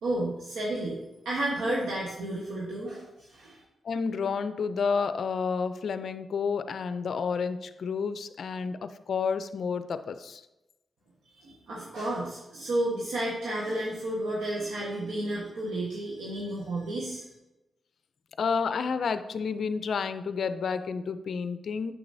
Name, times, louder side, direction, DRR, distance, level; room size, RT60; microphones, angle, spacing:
voice 1, 0.0-3.6 11.2-17.3, right 1 dB, 90° right, -5 dB, 1.2 m, -32 dB
voice 2, 3.8-10.4 18.4-21.9, left 5 dB, 70° left, 11 dB, 0.4 m, -30 dB
8.6 x 6.7 x 2.7 m, 0.98 s
cardioid pair, 55°, 0 cm